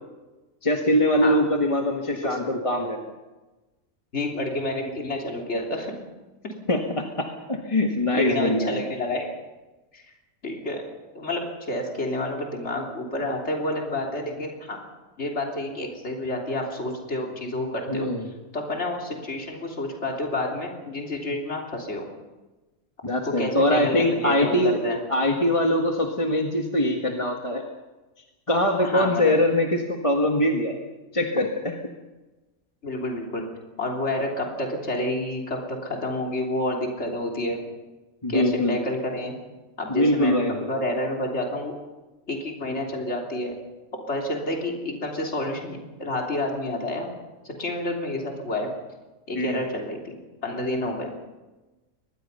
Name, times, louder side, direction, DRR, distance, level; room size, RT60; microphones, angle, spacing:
voice 1, 0.6-3.1 6.7-8.8 17.9-18.2 23.0-24.8 25.1-27.6 28.5-30.8 31.1-31.8 38.2-38.8 39.9-40.7 49.3-49.6, left 1 dB, 25° left, 2 dB, 1.6 m, -23 dB
voice 2, 4.1-5.9 6.4-6.5 8.1-9.3 9.9-10.1 10.4-10.8 11.1-14.8 15.2-18.1 18.5-22.0 23.4-25.0 28.8-29.4 32.8-33.5 33.8-37.6 38.3-39.4 39.8-41.7 42.3-43.6 44.1-47.1 47.4-48.7 49.3-51.1, left 1 dB, 50° left, 0 dB, 3.6 m, -29 dB
23.5 x 20.5 x 5.6 m, 1.1 s
omnidirectional pair, 1.5 m